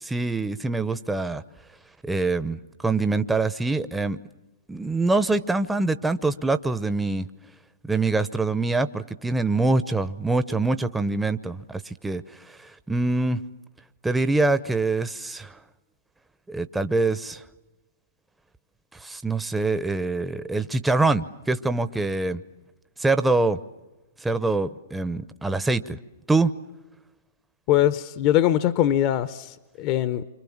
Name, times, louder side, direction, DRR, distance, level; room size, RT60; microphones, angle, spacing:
voice 1, 0.0-1.4 2.0-4.2 4.7-7.3 7.8-13.4 14.0-15.6 16.5-17.4 18.9-22.4 23.0-23.6 24.2-26.0 26.3-26.5, right 3 dB, 5° right, 10 dB, 0.8 m, -24 dB
voice 2, 27.7-30.2, left 12 dB, 40° left, 14 dB, 0.9 m, -22 dB
28.5 x 25.5 x 7.3 m, 1.1 s
hypercardioid pair, 125°, 0 cm